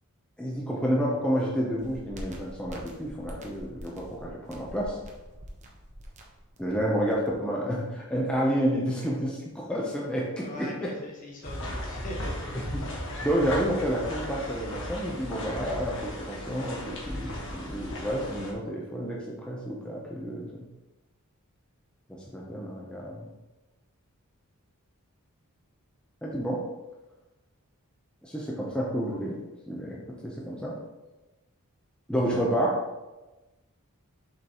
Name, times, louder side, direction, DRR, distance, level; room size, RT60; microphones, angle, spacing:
voice 1, 0.4-5.0 6.6-10.9 12.5-20.4 22.1-23.2 26.2-26.6 28.2-29.4 29.7-30.0 30.2-30.7 32.1-32.8, equal, 5° left, -4 dB, 0.8 m, -30 dB
sound 1, 1.8-7.3, equal, 35° right, 1.1 m, -44 dB
voice 2, 10.3-12.5, left 1 dB, 35° left, -1 dB, 1.5 m, -41 dB
sound 2, 11.4-18.5, left 1 dB, 60° left, 1.6 m, -36 dB
7.3 x 5.4 x 3.1 m, 1.1 s
head